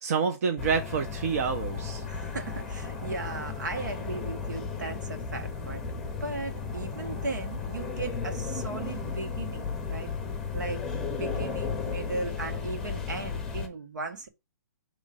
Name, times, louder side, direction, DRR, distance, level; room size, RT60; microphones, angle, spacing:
voice 1, 0.0-2.0, right 6 dB, 50° right, 0.8 m, -28 dB
sound 1, 0.6-13.7, left 5 dB, 5° left, 0.9 m, -34 dB
voice 2, 2.1-5.8 6.2-10.1 10.5-10.9 11.2-14.3, right 3 dB, 80° right, 1.9 m, -37 dB
6.5 x 3.2 x 5.1 m
hypercardioid pair, 160°, 10 cm